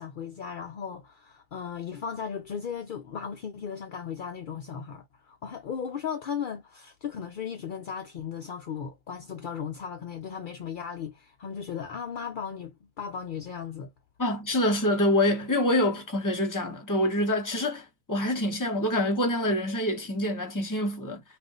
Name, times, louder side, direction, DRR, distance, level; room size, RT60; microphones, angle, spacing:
voice 1, 0.0-13.9, left 7 dB, 65° left, 0.5 m, -36 dB
voice 2, 14.2-21.2, left 1 dB, 15° left, 0.8 m, -26 dB
2.6 x 2.4 x 3.7 m
omnidirectional pair, 1.4 m